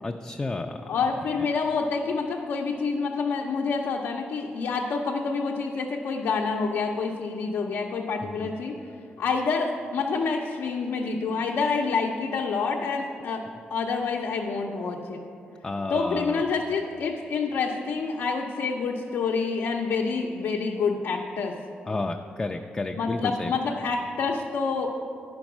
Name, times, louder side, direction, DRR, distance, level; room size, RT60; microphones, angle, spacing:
voice 1, 0.0-0.8 8.2-8.5 15.6-16.4 21.9-23.5, left 2 dB, 20° left, 4 dB, 0.3 m, -31 dB
voice 2, 0.9-8.7 9.2-13.4 13.7-15.2 15.9-21.5 22.9-24.9, left 4 dB, 85° left, -1 dB, 0.6 m, -27 dB
9.8 x 5.3 x 6.0 m, 2.6 s
wide cardioid pair, 125°, 4 cm